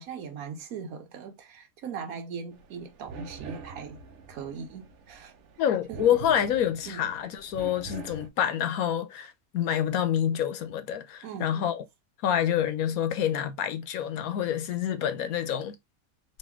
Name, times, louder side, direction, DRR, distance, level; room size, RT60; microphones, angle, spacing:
voice 1, 0.0-4.0 4.3-5.4 5.9-6.2 6.9-7.1 11.2-11.7, right 6 dB, 80° right, 1.3 m, -40 dB
sound 1, 2.5-8.3, right 5 dB, 65° right, 0.9 m, -44 dB
voice 2, 5.6-11.8 12.2-15.8, left 10 dB, 90° left, 1.2 m, -27 dB
4.1 x 2.6 x 3.5 m
omnidirectional pair, 1.5 m